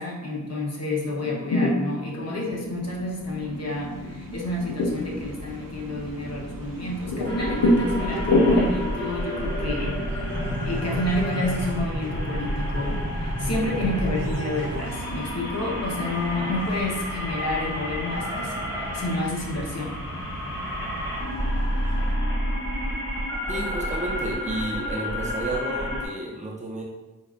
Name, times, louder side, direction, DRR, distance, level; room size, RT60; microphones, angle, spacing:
voice 1, 0.0-10.1 10.6-20.0, left 1 dB, 50° left, -2 dB, 0.8 m, -30 dB
sound 1, 1.0-10.8, left 1 dB, 85° left, 0.6 m, -28 dB
sound 2, 2.4-22.2, right 2 dB, 80° right, 0.6 m, -39 dB
sound 3, 7.2-26.1, equal, 10° left, 1.2 m, -30 dB
voice 2, 23.5-26.8, right 2 dB, 20° right, -3 dB, 0.5 m, -31 dB
4.5 x 2.4 x 2.4 m, 1.1 s
wide cardioid pair, 85°, 33 cm